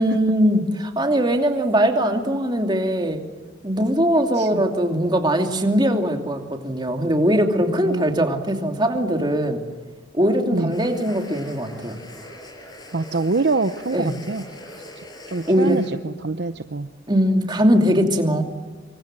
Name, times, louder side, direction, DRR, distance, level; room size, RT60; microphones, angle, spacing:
voice 1, 0.0-3.2 3.6-9.6 10.1-11.9 13.9-14.1 15.5-15.8 17.1-18.4, equal, 25° right, 4 dB, 2.7 m, -20 dB
voice 2, 7.8-8.3 10.5-10.7 12.9-14.4 15.3-16.9, right 3 dB, 60° right, 11 dB, 0.7 m, -25 dB
sound 1, 10.7-15.9, left 1 dB, 20° left, 5.7 m, -42 dB
26.0 x 24.5 x 7.6 m, 1.4 s
head